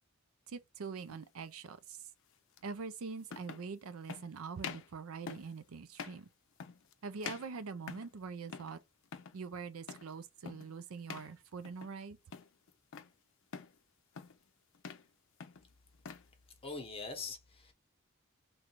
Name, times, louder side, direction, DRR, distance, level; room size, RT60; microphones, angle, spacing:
voice 1, 0.5-2.0 2.6-6.3 7.0-8.8 9.3-12.2, right 5 dB, 70° right, 0.5 m, -44 dB
sound 1, 1.1-1.3 2.6-2.7 3.3-3.7 4.1-4.3 4.6-4.9 5.3-5.5 5.9-6.2 6.6-6.9 7.2-8.2 8.5-8.8 9.0-9.4 9.9-10.1 10.5-10.7 11.1-11.3 11.6-12.0 12.3-13.1 13.5-13.8 14.1-14.4 14.7-15.1 15.4-16.3, left 6 dB, 65° left, 0.5 m, -46 dB
voice 2, 16.6-17.7, left 4 dB, 25° left, 1.0 m, -42 dB
3.1 x 2.5 x 4.4 m
head